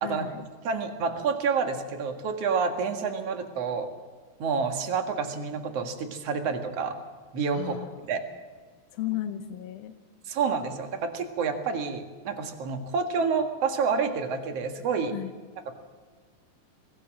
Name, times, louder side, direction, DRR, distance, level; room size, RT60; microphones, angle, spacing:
voice 1, 0.0-0.5 7.5-8.1 8.9-9.9 15.1-15.3, left 13 dB, 90° left, 6 dB, 2.8 m, -35 dB
voice 2, 0.6-3.9 4.4-6.9 7.3-7.8 8.1-8.2 10.3-15.1, right 5 dB, 50° right, 5 dB, 2.5 m, -28 dB
23.0 x 15.5 x 7.5 m, 1.4 s
omnidirectional pair, 4.1 m